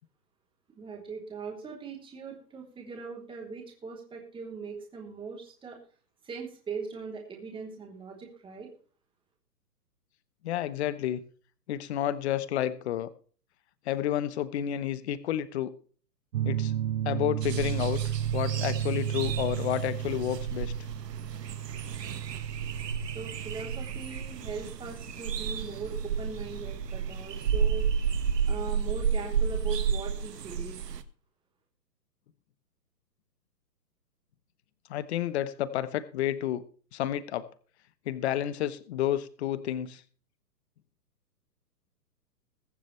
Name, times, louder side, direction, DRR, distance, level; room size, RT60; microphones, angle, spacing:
voice 1, 0.7-5.8 6.2-8.7 23.1-27.8 28.5-30.8, right 5 dB, 10° right, 0 dB, 3.3 m, -40 dB
voice 2, 10.4-11.2 11.7-13.1 13.9-15.7 16.4-16.7 17.0-18.0 18.3-20.7 34.9-36.6 36.9-37.4 38.1-40.0, left 12 dB, 40° left, 15 dB, 1.0 m, -30 dB
sound 1, 16.3-27.5, right 11 dB, 50° right, 0.6 m, -34 dB
sound 2, 17.4-31.0, right 6 dB, 75° right, 1.5 m, -32 dB
22.0 x 7.4 x 3.3 m, 0.42 s
hypercardioid pair, 145°, 49 cm